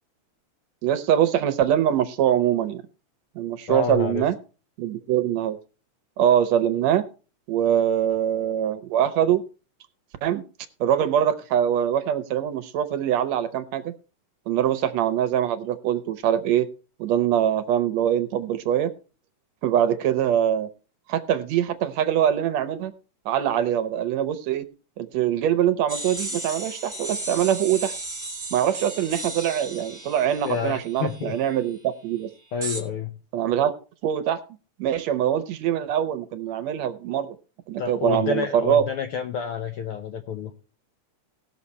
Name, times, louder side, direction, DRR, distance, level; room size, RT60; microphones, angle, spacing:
voice 1, 0.8-2.8 3.4-4.4 4.8-5.6 6.2-7.1 7.5-9.4 10.2-10.4 10.8-13.9 14.5-16.7 17.0-18.9 19.6-20.7 21.1-22.9 23.3-24.7 25.0-27.9 28.5-32.3 33.3-33.7 34.0-34.4 34.8-37.4 37.7-38.8, right 10 dB, 70° right, 11 dB, 1.8 m, -23 dB
voice 2, 3.7-4.3 30.4-31.4 32.5-33.2 37.8-40.5, left 7 dB, 75° left, 6 dB, 1.3 m, -29 dB
sound 1, 25.9-31.6 32.6-32.8, right 2 dB, 5° right, 2.0 m, -35 dB
18.5 x 6.5 x 4.2 m, 0.35 s
omnidirectional pair, 3.5 m